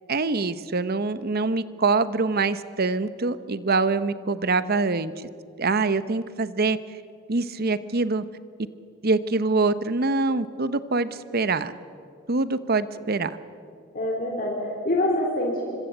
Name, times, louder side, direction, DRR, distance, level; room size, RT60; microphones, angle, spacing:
voice 1, 0.1-5.1 5.6-6.8 7.3-8.2 9.0-11.7 12.3-13.4, right 3 dB, 45° right, 14 dB, 0.9 m, -24 dB
voice 2, 13.9-15.8, left 1 dB, 45° left, -1 dB, 3.9 m, -26 dB
25.0 x 25.0 x 8.1 m, 2.5 s
head